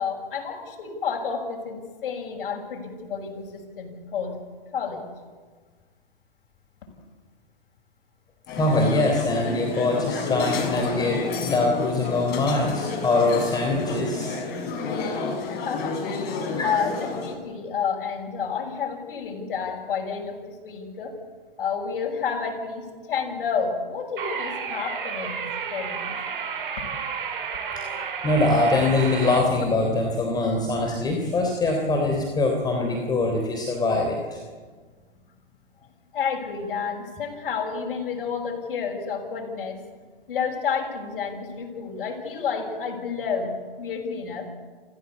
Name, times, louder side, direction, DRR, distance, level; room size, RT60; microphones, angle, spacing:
voice 1, 0.0-4.3 4.7-5.0 15.2-16.0 16.6-21.1 21.6-25.4 25.7-26.2 36.1-39.8 40.3-44.5, left 6 dB, 60° left, 0 dB, 6.7 m, -30 dB
sound 1, 8.5-17.3, left 4 dB, 35° left, 6.3 m, -30 dB
voice 2, 8.5-14.6 16.5-16.7 28.2-34.4, left 2 dB, 15° left, 1 dB, 3.6 m, -23 dB
sound 2, 24.2-29.4, right 6 dB, 60° right, 5.2 m, -31 dB
28.5 x 15.5 x 8.5 m, 1.5 s
hypercardioid pair, 130°, 30 cm